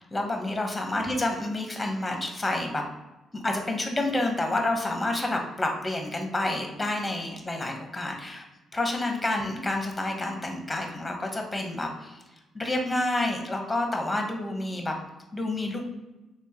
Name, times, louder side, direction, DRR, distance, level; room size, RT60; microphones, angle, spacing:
voice 1, 0.1-2.8 3.3-8.4 8.7-12.2 12.5-14.9 15.3-15.8, left 2 dB, 15° left, 3 dB, 0.8 m, -29 dB
3.5 x 3.2 x 2.8 m, 1.0 s
cardioid pair, 90°, 0 cm